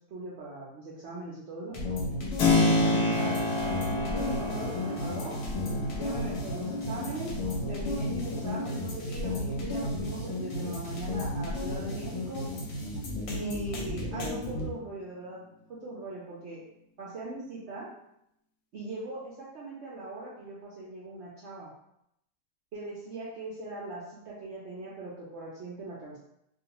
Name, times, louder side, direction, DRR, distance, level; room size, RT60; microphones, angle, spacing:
voice 1, 0.1-1.8 2.4-5.4 5.9-7.4 7.7-12.5 13.3-16.6 17.0-17.9 18.7-21.7 22.7-26.2, right 2 dB, 70° right, -6 dB, 0.6 m, -40 dB
sound 1, 1.7-14.7, left 1 dB, 65° left, 0.9 m, -33 dB
Keyboard (musical), 2.4-10.9, left 3 dB, 85° left, 1.1 m, -30 dB
2.5 x 2.3 x 2.8 m, 0.79 s
omnidirectional pair, 1.7 m